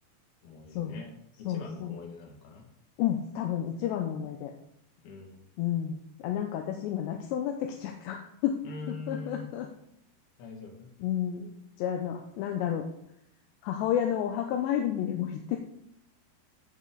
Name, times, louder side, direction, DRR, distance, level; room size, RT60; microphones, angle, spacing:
voice 1, 0.4-1.1 1.4-2.6 5.0-5.5 8.6-9.5 10.4-10.9, left 3 dB, 60° left, 1 dB, 3.5 m, -43 dB
voice 2, 1.5-2.0 3.0-4.5 5.6-8.6 8.9-9.7 11.0-11.5 11.8-12.9 13.6-15.6, left 10 dB, 80° left, 3 dB, 2.7 m, -31 dB
16.0 x 5.4 x 3.9 m, 0.74 s
omnidirectional pair, 5.5 m